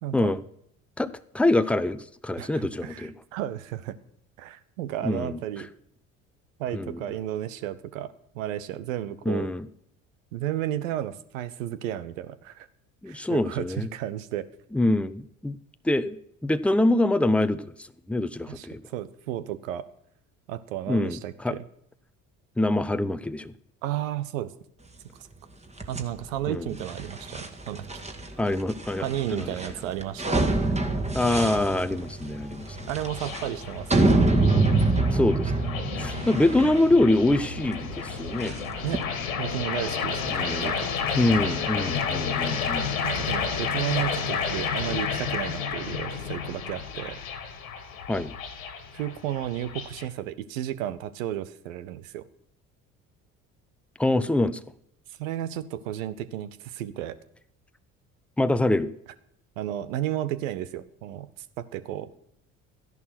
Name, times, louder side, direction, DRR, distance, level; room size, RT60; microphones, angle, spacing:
voice 1, 0.0-0.3 2.4-4.0 4.4-5.7 6.6-9.5 10.3-12.7 13.1-14.5 18.5-18.7 18.9-19.9 20.5-21.6 23.8-24.5 25.9-27.8 29.0-30.5 32.9-34.3 38.8-39.1 39.4-40.8 43.0-47.2 48.9-52.2 55.2-57.2 59.6-61.3 61.6-62.1, right 12 dB, 70° right, 14 dB, 1.1 m, -33 dB
voice 2, 1.0-3.1 5.0-5.4 6.7-7.0 9.2-9.7 13.0-13.9 14.7-15.6 15.8-18.8 20.9-21.5 22.6-23.5 26.5-26.7 28.4-29.5 31.1-32.9 35.1-38.6 40.3-40.8 41.2-42.9 48.1-48.3 54.0-54.6 58.4-58.9, left 1 dB, 5° left, 12 dB, 0.8 m, -25 dB
sound 1, 25.8-39.0, right 2 dB, 15° right, 2.1 m, -27 dB
sound 2, 31.1-50.0, left 6 dB, 80° left, 2.3 m, -31 dB
13.5 x 11.0 x 6.0 m, 0.70 s
figure-of-eight pair, 60°, 40 cm